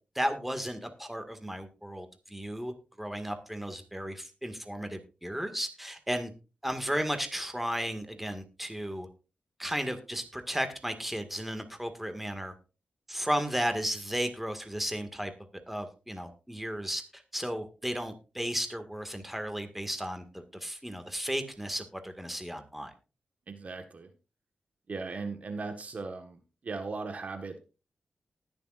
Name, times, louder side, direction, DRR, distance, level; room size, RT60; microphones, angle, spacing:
voice 1, 0.2-6.3 6.6-9.1 9.6-12.5 13.1-15.3 15.7-22.9, equal, 5° right, 7 dB, 1.9 m, -34 dB
voice 2, 23.5-24.1 24.9-27.6, right 4 dB, 55° right, 7 dB, 1.5 m, -38 dB
19.5 x 7.0 x 2.5 m, 0.31 s
cardioid pair, 70°, 3 cm